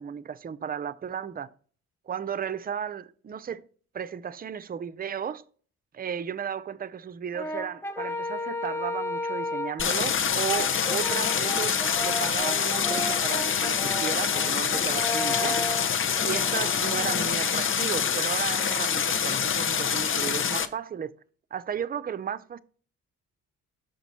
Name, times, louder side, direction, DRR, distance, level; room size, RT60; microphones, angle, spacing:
voice 1, 0.0-1.5 2.1-3.7 3.9-5.4 5.9-15.6 16.2-21.1 21.5-22.6, right 8 dB, 30° right, 0.6 m, -34 dB
Brass instrument, 7.3-9.9 10.4-17.4, left 1 dB, 10° left, 0.7 m, -34 dB
Stream, 9.8-20.7, left 7 dB, 40° left, 0.8 m, -26 dB
5.9 x 5.1 x 5.4 m
cardioid pair, 90°, 30 cm